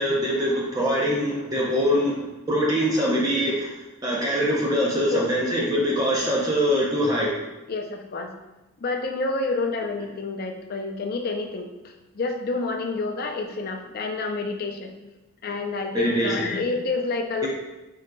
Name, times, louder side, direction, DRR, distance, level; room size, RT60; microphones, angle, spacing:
voice 1, 0.0-2.2 2.5-3.7 4.0-7.3 15.9-16.5, equal, 15° right, -4 dB, 0.5 m, -23 dB
voice 2, 7.7-8.3 8.8-14.9 15.4-17.5, left 3 dB, 45° left, 4 dB, 0.4 m, -28 dB
4.4 x 3.8 x 2.2 m, 1.0 s
head